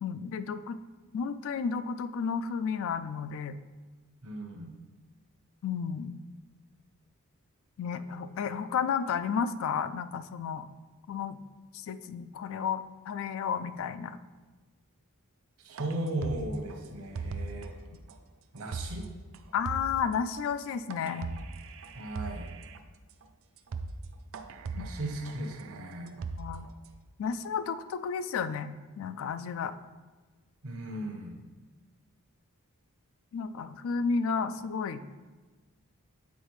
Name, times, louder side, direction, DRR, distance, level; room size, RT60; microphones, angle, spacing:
voice 1, 0.0-0.8 1.1-3.6 5.6-6.2 7.8-10.7 11.1-11.4 11.7-14.2 19.5-21.3 24.8-24.9 26.4-26.7 27.2-29.7 33.3-35.0, left 6 dB, 60° left, 12 dB, 0.3 m, -32 dB
voice 2, 4.2-4.7 15.6-17.7 18.5-19.1 21.9-22.5 24.7-26.2 30.6-31.4, right 1 dB, 80° right, 2 dB, 1.0 m, -36 dB
sound 1, 15.7-17.7 18.1-18.2 18.6-19.1 19.3-19.4 19.7-20.1 20.9-22.8 23.2-23.3 23.6-24.0 24.3-26.9, right 4 dB, 60° right, 0.4 m, -39 dB
8.3 x 4.0 x 3.1 m, 1.3 s
head